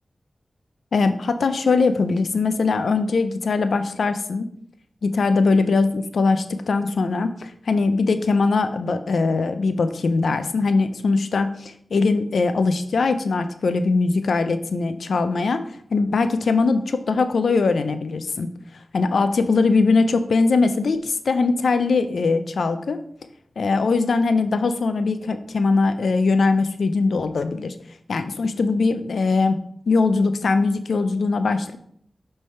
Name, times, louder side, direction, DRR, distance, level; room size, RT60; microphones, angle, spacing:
voice 1, 0.9-4.5 5.0-15.6 15.9-18.5 18.9-23.0 23.6-27.7 28.1-29.6 29.9-31.8, left 4 dB, 90° left, 10 dB, 0.5 m, -21 dB
8.6 x 3.4 x 4.4 m, 0.66 s
wide cardioid pair, 70°, 0 cm